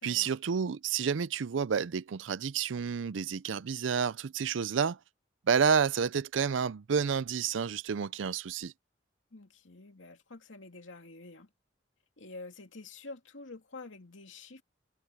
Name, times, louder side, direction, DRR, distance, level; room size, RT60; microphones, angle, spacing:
voice 1, 0.0-5.0 5.5-8.7, right 6 dB, 75° right, 0.5 m, -30 dB
voice 2, 9.3-11.5 12.2-14.6, left 3 dB, 80° left, 2.5 m, -48 dB
head